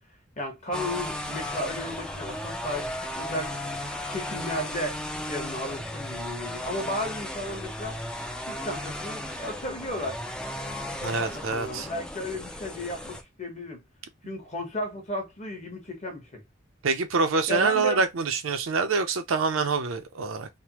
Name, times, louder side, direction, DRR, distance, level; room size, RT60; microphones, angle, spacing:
voice 1, 0.4-3.6 4.1-5.0 5.3-8.0 8.4-10.2 11.0-13.8 14.2-16.4 17.5-18.0, left 1 dB, 35° left, 1.0 m, -34 dB
sound 1, 0.7-13.2, left 1 dB, 5° left, 0.3 m, -35 dB
voice 2, 11.0-11.9 16.8-20.5, right 4 dB, 75° right, 0.5 m, -26 dB
3.3 x 2.1 x 2.9 m
head